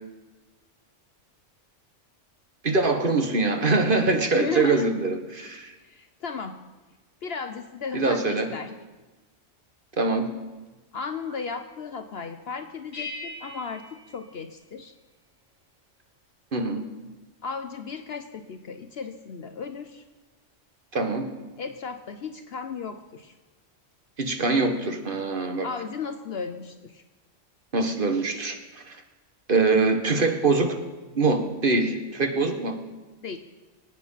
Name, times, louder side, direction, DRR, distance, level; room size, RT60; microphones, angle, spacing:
voice 1, 2.6-5.7 7.9-8.5 10.0-10.3 16.5-16.8 20.9-21.3 24.2-25.7 27.7-28.6 28.9-29.0 29.5-30.8 31.1-32.8, right 3 dB, 45° right, 5 dB, 1.6 m, -23 dB
voice 2, 4.3-4.9 5.8-6.6 7.2-8.7 10.9-14.9 17.4-20.0 21.6-23.4 25.6-27.0 33.2-33.4, left 5 dB, 60° left, 8 dB, 1.0 m, -35 dB
sound 1, 12.9-15.1, left 2 dB, 35° left, 6.5 m, -41 dB
23.0 x 9.1 x 5.7 m, 1.2 s
omnidirectional pair, 1.2 m